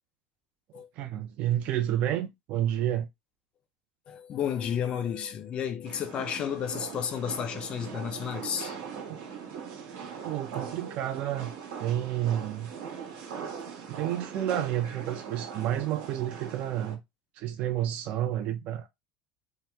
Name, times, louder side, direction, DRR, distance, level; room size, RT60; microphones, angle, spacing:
voice 1, 1.0-3.1 9.1-9.2 10.2-11.5 11.8-12.7 13.9-17.0 17.4-18.9, right 12 dB, 50° right, 0.5 m, -30 dB
voice 2, 4.1-8.8, left 8 dB, 35° left, 0.4 m, -32 dB
sound 1, 5.8-17.0, right 7 dB, 70° right, 1.1 m, -40 dB
2.9 x 2.0 x 3.3 m
cardioid pair, 150°, 3 cm